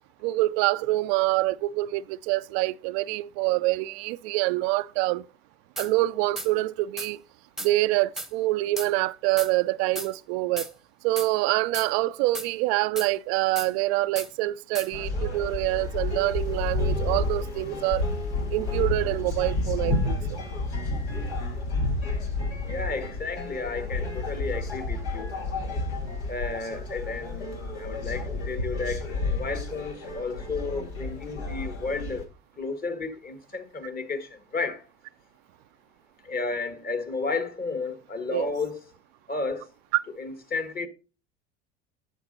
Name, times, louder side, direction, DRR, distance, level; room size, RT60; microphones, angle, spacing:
voice 1, 0.2-5.2 5.8-7.2 7.6-10.7 11.0-18.0 18.5-20.4 38.3-38.5, right 18 dB, 70° right, 0.5 m, -26 dB
sound 1, 5.8-5.9 6.4-6.5 7.0-7.1 7.6-7.7 8.2-8.3 8.8-8.9 9.4-9.5 10.0-10.1 10.6-10.7 11.2-11.3 11.7-11.9 12.3-12.5 13.0-13.1 13.6-13.7 14.2-14.3 14.7-14.9, right 1 dB, ahead, 0.9 m, -35 dB
sound 2, 14.9-32.2, left 2 dB, 80° left, 2.4 m, -30 dB
voice 2, 22.6-25.3 26.3-32.2 32.6-34.8 36.2-38.8 39.3-39.7 40.2-40.9, left 3 dB, 30° left, 1.3 m, -32 dB
9.0 x 6.4 x 3.9 m
hypercardioid pair, 85°, 32 cm